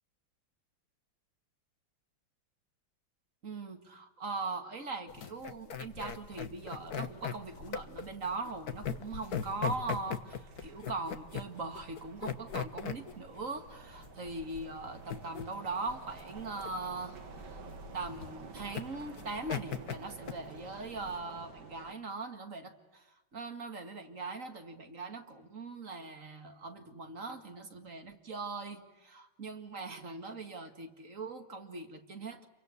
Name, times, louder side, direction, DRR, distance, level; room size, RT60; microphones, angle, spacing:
voice 1, 3.4-17.7 17.9-23.0 23.3-32.5, right 3 dB, 40° right, 6 dB, 2.4 m, -41 dB
sound 1, 5.1-21.2, left 7 dB, 55° left, 1.7 m, -40 dB
sound 2, 5.7-21.9, right 4 dB, 60° right, 2.4 m, -52 dB
28.5 x 24.0 x 8.2 m, 1.0 s
omnidirectional pair, 2.2 m